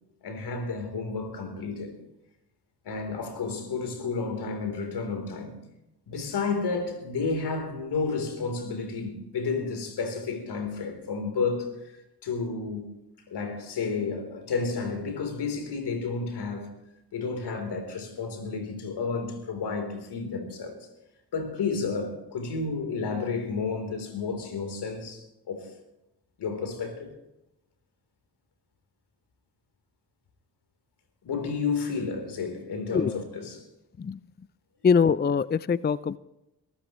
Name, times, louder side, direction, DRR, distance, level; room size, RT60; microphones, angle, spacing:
voice 1, 0.2-2.0 2.8-5.6 6.1-11.9 12.2-12.9 13.3-16.7 17.1-20.8 21.3-25.7 26.4-27.1 31.2-33.6, left 4 dB, 75° left, 3.9 m, -31 dB
voice 2, 34.8-36.2, left 6 dB, 25° left, 0.5 m, -23 dB
22.5 x 14.0 x 3.2 m
supercardioid pair, 45°, 40 cm